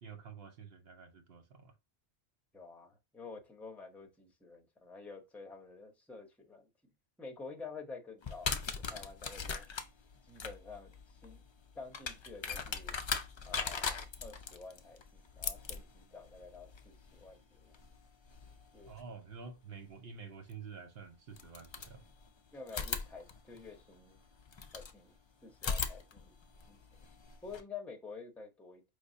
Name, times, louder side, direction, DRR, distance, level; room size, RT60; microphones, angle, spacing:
voice 1, 0.0-1.7 18.9-22.0, right 5 dB, 65° right, 1.1 m, -49 dB
voice 2, 2.5-6.7 7.2-8.5 8.8-9.7 10.2-11.4 11.7-13.0 13.4-17.8 18.7-19.1 22.5-24.2 24.7-25.1 25.4-26.3 26.7-26.8 27.4-28.8, left 4 dB, ahead, 0.7 m, -49 dB
sound 1, 8.2-19.0 20.5-20.6 21.3-22.3 22.7-24.9 25.5-27.6, left 5 dB, 50° left, 0.3 m, -40 dB
5.0 x 3.0 x 2.6 m
omnidirectional pair, 1.1 m